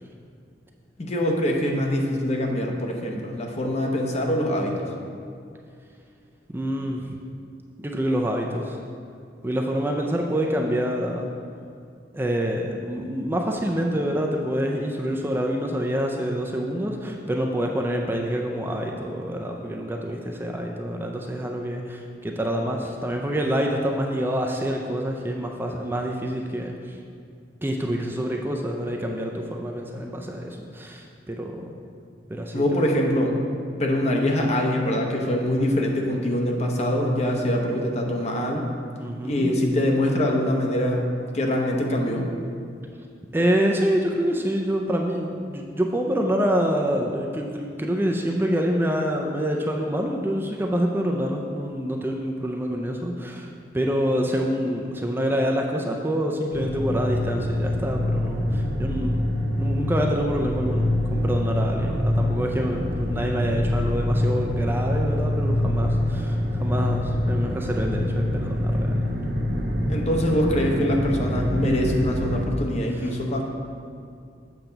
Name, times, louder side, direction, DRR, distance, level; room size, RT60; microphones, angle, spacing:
voice 1, 1.0-4.9 32.5-33.5 33.8-38.7 39.2-41.1 41.3-42.2 69.9-73.4, left 1 dB, 40° left, 1 dB, 0.8 m, -24 dB
voice 2, 6.5-7.2 7.8-8.8 9.4-11.3 12.1-27.0 27.6-31.7 32.3-32.9 39.0-39.5 43.3-59.1 59.5-69.1 72.9-73.2, equal, 10° right, 1 dB, 0.4 m, -26 dB
sound 1, 56.5-72.5, left 1 dB, 70° right, 1.0 m, -25 dB
7.7 x 5.8 x 3.9 m, 2.4 s
head